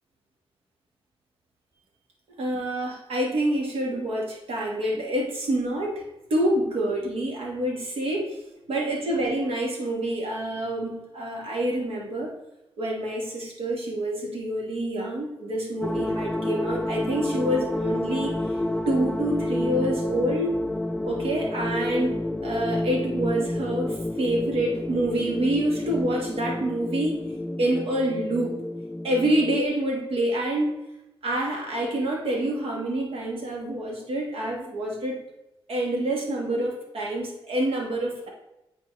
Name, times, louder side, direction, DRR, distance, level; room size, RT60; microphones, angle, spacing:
voice 1, 2.4-6.0 6.3-8.4 8.7-12.3 12.8-18.6 18.9-20.6 21.1-22.2 22.4-27.2 27.6-28.6 29.0-30.7 31.2-35.2 35.7-38.3, right 1 dB, 90° right, -1 dB, 1.7 m, -27 dB
sound 1, 15.8-29.6, left 1 dB, 10° left, 0.5 m, -30 dB
9.1 x 4.3 x 3.2 m, 0.93 s
cardioid pair, 80°, 9 cm